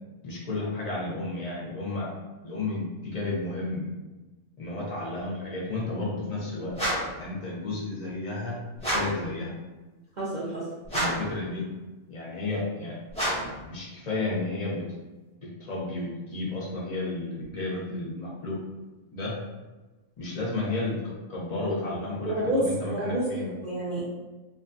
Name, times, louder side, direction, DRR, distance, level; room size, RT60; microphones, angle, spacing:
voice 1, 0.2-2.1 2.4-3.9 4.6-6.8 7.2-8.6 8.9-9.5 10.9-11.7 12.1-13.0 13.6-14.8 15.4-18.6 19.1-19.4 20.2-23.5, left 2 dB, 50° left, -5 dB, 0.4 m, -32 dB
sound 1, 6.7-7.2 8.8-9.2 10.9-11.4 13.1-13.6, right 1 dB, 5° left, 0.6 m, -29 dB
voice 2, 10.2-10.7 22.2-24.0, right 1 dB, 65° right, -7 dB, 0.4 m, -29 dB
2.5 x 2.3 x 2.5 m, 1.2 s
omnidirectional pair, 1.4 m